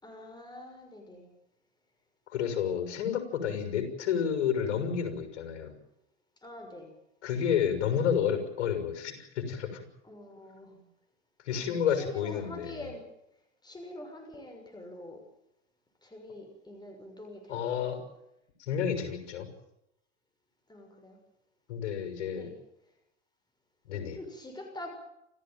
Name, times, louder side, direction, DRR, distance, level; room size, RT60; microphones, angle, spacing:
voice 1, 0.0-1.3 6.4-6.9 10.0-10.8 11.5-13.2 13.6-15.2 16.0-17.9 20.7-21.2 22.4-22.6 23.9-24.9, left 1 dB, 10° left, 4 dB, 6.2 m, -45 dB
voice 2, 2.3-5.8 7.2-9.8 11.4-12.9 17.5-18.0 18.6-19.5 21.7-22.5 23.8-24.2, left 8 dB, 70° left, 7 dB, 6.2 m, -30 dB
29.0 x 15.0 x 9.2 m, 0.84 s
hypercardioid pair, 95°, 36 cm